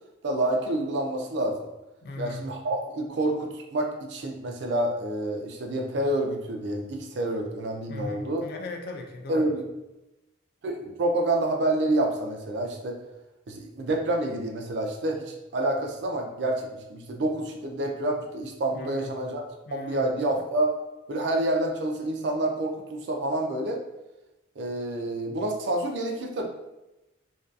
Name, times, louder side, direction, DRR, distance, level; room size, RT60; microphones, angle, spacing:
voice 1, 0.2-1.7 2.2-8.5 9.3-9.6 10.6-13.0 13.5-20.7 21.1-23.8 24.6-26.5, right 1 dB, 60° right, 3 dB, 0.3 m, -28 dB
voice 2, 2.0-2.4 7.9-9.5 18.7-19.1 19.7-20.1, left 2 dB, 50° left, 2 dB, 0.3 m, -38 dB
2.6 x 2.3 x 2.3 m, 0.99 s
head